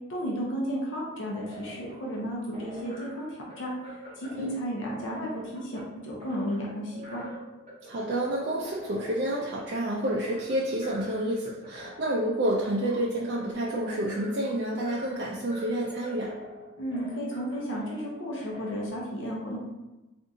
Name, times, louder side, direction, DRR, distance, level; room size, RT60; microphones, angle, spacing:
voice 1, 0.1-7.2 16.8-19.6, equal, 75° left, -3 dB, 0.7 m, -33 dB
sound 1, 1.1-18.9, equal, 35° right, 0.8 m, -46 dB
voice 2, 7.9-16.3, right 1 dB, 55° right, -5 dB, 0.4 m, -29 dB
3.7 x 2.5 x 2.7 m, 1.0 s
head